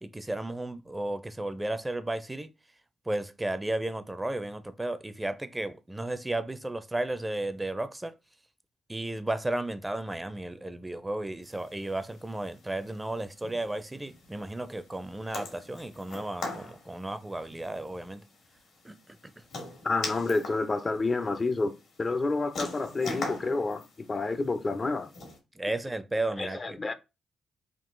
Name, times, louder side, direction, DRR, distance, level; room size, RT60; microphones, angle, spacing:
voice 1, 0.0-2.5 3.1-8.1 8.9-18.2 18.8-18.9 25.6-26.8, right 1 dB, 15° right, 0.5 m, -34 dB
sound 1, 11.4-25.4, left 3 dB, 75° left, 1.6 m, -43 dB
voice 2, 19.8-25.1 26.4-26.9, left 3 dB, 35° left, 0.5 m, -29 dB
3.8 x 2.4 x 3.8 m
supercardioid pair, 60°, 0 cm